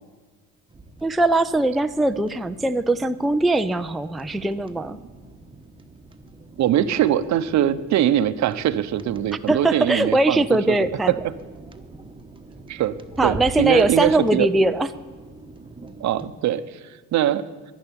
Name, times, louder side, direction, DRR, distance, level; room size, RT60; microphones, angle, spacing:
sound 1, 0.7-16.3, right 2 dB, 15° right, 1.1 m, -43 dB
voice 1, 1.0-5.0 9.5-11.1 13.2-14.9, right 2 dB, ahead, 8 dB, 0.4 m, -21 dB
voice 2, 6.6-11.3 12.7-14.5 16.0-17.4, right 11 dB, 60° right, 13 dB, 0.8 m, -22 dB
11.5 x 11.0 x 9.8 m, 1.5 s
cardioid pair, 115°, 32 cm